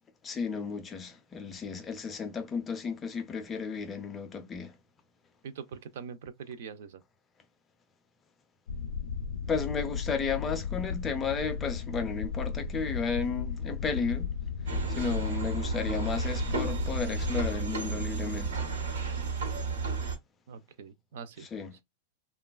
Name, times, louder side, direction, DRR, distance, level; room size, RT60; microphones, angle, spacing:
voice 1, 0.2-4.8 9.5-14.3 14.9-18.7 21.4-21.8, left 5 dB, 15° left, 0.3 m, -33 dB
voice 2, 5.4-7.0 20.5-21.5, right 6 dB, 55° right, 0.4 m, -43 dB
sound 1, 8.7-17.6, left 6 dB, 90° left, 0.4 m, -35 dB
sound 2, 14.7-20.2, right 4 dB, 80° right, 0.9 m, -33 dB
3.0 x 2.2 x 2.2 m
supercardioid pair, 175°, 0 cm